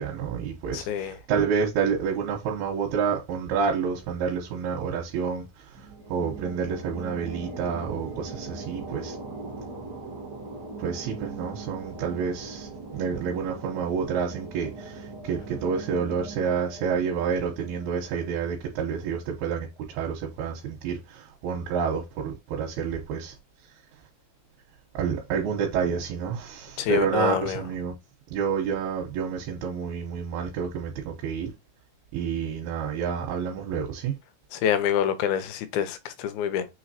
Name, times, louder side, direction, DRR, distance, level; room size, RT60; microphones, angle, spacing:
voice 1, 0.0-9.2 10.8-23.3 24.9-27.9 28.3-31.5 32.1-34.2, right 6 dB, 85° right, 2.9 m, -29 dB
voice 2, 0.7-1.2 26.8-27.6 34.5-36.7, left 9 dB, 85° left, 2.5 m, -26 dB
sound 1, 5.7-19.1, right 3 dB, 65° right, 1.0 m, -40 dB
6.3 x 3.0 x 2.7 m
omnidirectional pair, 4.3 m